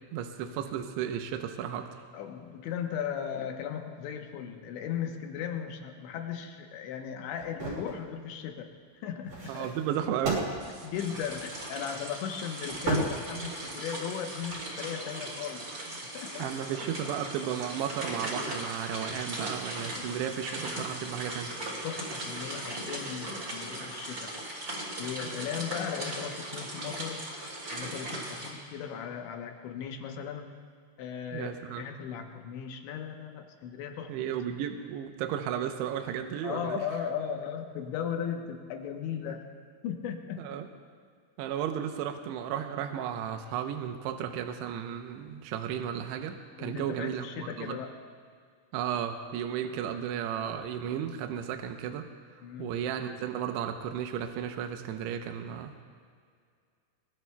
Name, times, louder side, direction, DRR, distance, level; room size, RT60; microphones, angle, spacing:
voice 1, 0.1-2.0 9.5-10.5 16.4-21.5 31.3-31.9 34.1-36.8 40.4-40.7 41.4-47.8 48.7-52.1 52.6-55.8, right 9 dB, 85° right, 5 dB, 2.5 m, -34 dB
voice 2, 2.1-9.7 10.8-15.7 16.1-16.5 19.8-20.2 20.7-21.0 21.8-24.3 25.0-27.3 27.7-30.5 31.0-34.2 36.4-39.5 39.8-40.5 46.6-48.1 52.4-52.8, left 8 dB, 75° left, 4 dB, 3.0 m, -37 dB
sound 1, 7.4-8.0 9.2-11.7 12.6-13.8 14.3-14.6, right 2 dB, 45° right, 6.1 m, -34 dB
sound 2, 10.6-10.9 11.2-11.7 12.4-12.8 13.4-14.7 15.5-16.8 17.3-23.1 23.9-24.8 25.3-25.5, right 3 dB, 65° right, 1.2 m, -52 dB
sound 3, 10.9-28.5, right 1 dB, 25° right, 4.5 m, -38 dB
22.5 x 22.5 x 2.3 m, 2.1 s
omnidirectional pair, 5.7 m